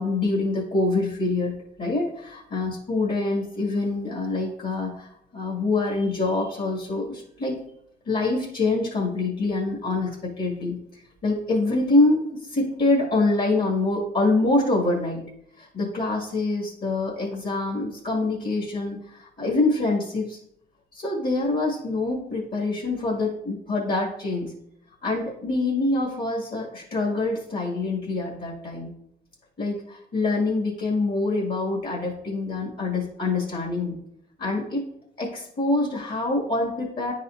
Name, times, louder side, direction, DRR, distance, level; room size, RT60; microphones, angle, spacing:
voice 1, 0.0-1.5 1.8-7.6 8.1-15.2 15.6-20.4 20.9-24.5 25.0-28.9 29.6-34.0 34.4-34.8 35.2-37.1, left 2 dB, 50° left, -4 dB, 1.9 m, -25 dB
10.0 x 4.2 x 2.5 m, 0.74 s
cardioid pair, 90°, 20 cm